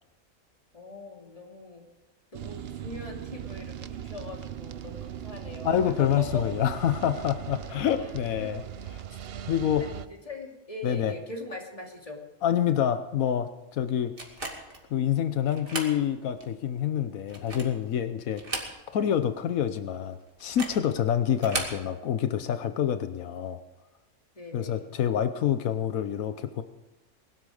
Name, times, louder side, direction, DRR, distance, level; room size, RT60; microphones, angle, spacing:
voice 1, 0.7-1.9 2.3-6.4 7.5-8.6 9.8-12.2 24.3-24.9, left 2 dB, 25° left, 1 dB, 2.6 m, -41 dB
sound 1, 2.3-10.1, right 10 dB, 55° right, 0.8 m, -39 dB
voice 2, 5.6-8.6 9.5-9.8 10.8-11.1 12.4-14.1 14.9-18.4 18.9-23.6 24.5-26.6, left 9 dB, 85° left, 10 dB, 1.2 m, -27 dB
sound 2, 14.2-14.8 15.5-16.0 16.4-16.5 17.2-17.8 18.3-19.1 19.4-19.5 20.4-20.8 21.3-21.8, right 2 dB, 40° right, 2.7 m, -35 dB
21.0 x 12.5 x 4.9 m, 1.1 s
omnidirectional pair, 1.4 m